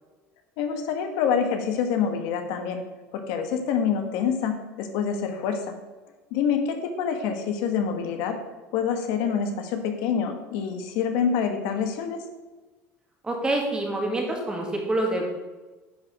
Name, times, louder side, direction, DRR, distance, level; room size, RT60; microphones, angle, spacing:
voice 1, 0.6-2.8 3.1-5.7 6.3-8.4 8.7-12.2, left 7 dB, 75° left, 5 dB, 1.3 m, -26 dB
voice 2, 13.2-15.3, right 1 dB, 15° right, 1 dB, 1.8 m, -26 dB
10.0 x 5.1 x 4.9 m, 1.2 s
cardioid pair, 140°, 6 cm